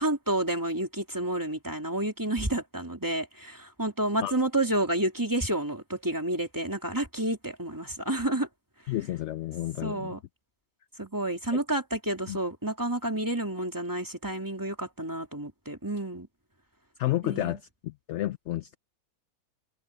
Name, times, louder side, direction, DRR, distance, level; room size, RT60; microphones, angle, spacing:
voice 1, 0.0-8.5 9.8-10.2 11.0-16.3 17.2-17.6, right 1 dB, 10° right, 2.8 m, -30 dB
voice 2, 8.9-10.1 12.3-12.4 17.0-18.8, left 14 dB, 65° left, 0.7 m, -31 dB
omnidirectional pair, 1.6 m